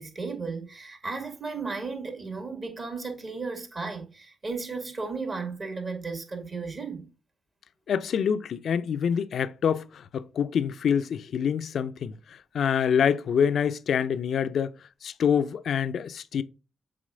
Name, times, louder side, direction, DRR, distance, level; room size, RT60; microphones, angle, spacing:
voice 1, 0.0-7.1, right 4 dB, 45° right, 2.6 m, -35 dB
voice 2, 7.9-12.1 12.5-14.7 15.0-16.4, left 7 dB, 65° left, 0.5 m, -26 dB
7.6 x 3.7 x 3.8 m
hypercardioid pair, 40°, 0 cm